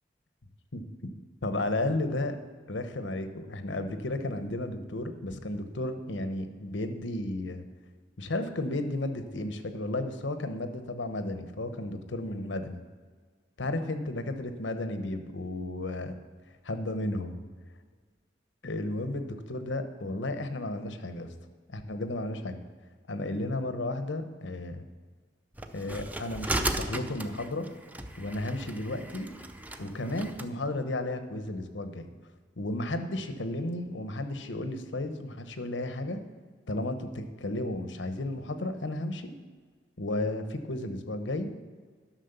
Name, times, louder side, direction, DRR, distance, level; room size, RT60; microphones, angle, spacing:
voice 1, 0.7-2.4 2.7-7.6 8.2-12.8 13.6-16.1 16.6-17.4 18.6-21.3 21.7-22.6 23.1-24.9 25.7-27.7 28.2-29.3 29.8-32.1 32.6-36.2 36.7-39.3 40.0-41.5, left 1 dB, 80° left, 9 dB, 1.0 m, -33 dB
sound 1, 25.6-30.5, right 1 dB, 10° right, 0.5 m, -36 dB
11.5 x 6.4 x 6.7 m, 1.5 s
head